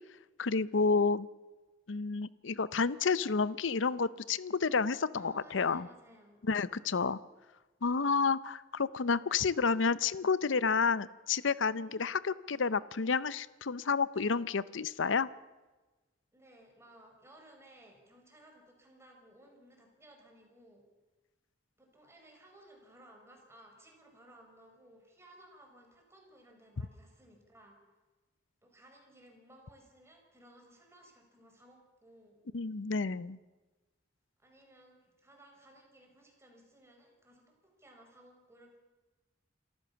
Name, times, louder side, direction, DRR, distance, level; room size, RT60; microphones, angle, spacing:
voice 1, 0.4-1.3 1.9-5.9 6.4-7.2 7.8-15.3 32.5-33.4, left 5 dB, 70° left, 18 dB, 0.7 m, -30 dB
voice 2, 5.2-6.4 16.3-20.8 21.8-27.8 28.6-32.4 34.4-38.8, right 1 dB, 15° right, 1 dB, 5.0 m, -59 dB
27.5 x 14.5 x 6.9 m, 1.2 s
head